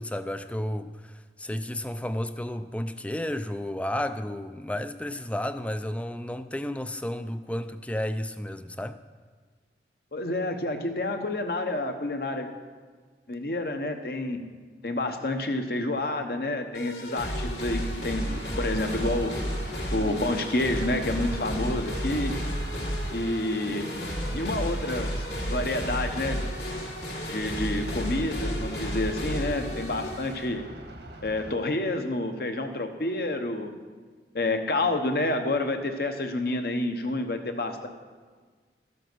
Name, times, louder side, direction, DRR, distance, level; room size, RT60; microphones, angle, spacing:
voice 1, 0.0-9.0, left 1 dB, 5° left, 0.3 m, -32 dB
voice 2, 10.1-12.5 13.3-14.4 14.8-18.3 18.6-19.5 19.9-22.4 23.1-23.9 24.3-26.5 27.3-30.7 31.2-33.7 34.3-37.9, left 2 dB, 60° left, 1.0 m, -29 dB
sound 1, 16.7-30.5, equal, 80° left, 2.5 m, -32 dB
sound 2, 18.3-31.6, right 1 dB, 80° right, 1.6 m, -44 dB
13.0 x 7.8 x 6.1 m
head